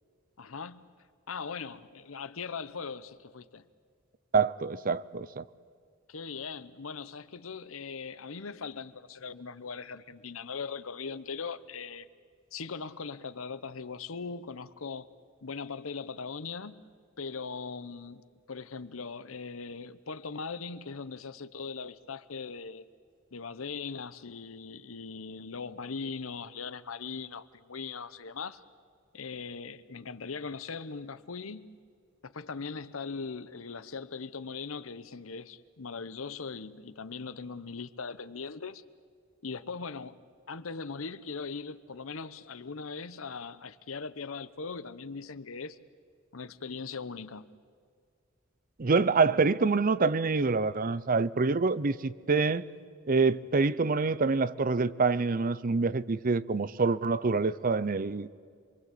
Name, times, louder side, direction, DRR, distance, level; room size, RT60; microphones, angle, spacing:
voice 1, 0.4-0.9 1.3-3.7 6.1-12.1 12.5-15.1 15.4-16.9 17.2-22.8 23.3-28.6 29.1-31.8 32.2-38.8 39.4-40.2 40.5-45.8 46.3-47.6, left 5 dB, 90° left, 0.9 m, -40 dB
voice 2, 4.3-5.4 48.8-52.6 53.1-58.3, right 4 dB, 45° right, 0.6 m, -26 dB
27.5 x 22.0 x 8.4 m
head